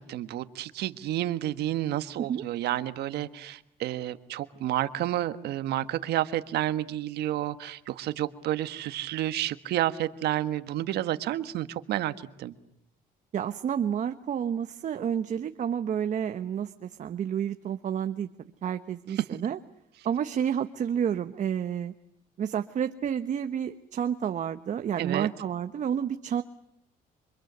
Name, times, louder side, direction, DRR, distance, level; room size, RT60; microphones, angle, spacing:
voice 1, 0.0-12.5 19.1-19.2 25.0-25.3, right 13 dB, 75° right, 12 dB, 1.5 m, -30 dB
voice 2, 13.3-18.3 18.6-19.6 20.0-21.9 22.4-26.4, right 8 dB, 45° right, 9 dB, 1.1 m, -30 dB
28.5 x 25.0 x 8.1 m, 0.76 s
cardioid pair, 110°, 17 cm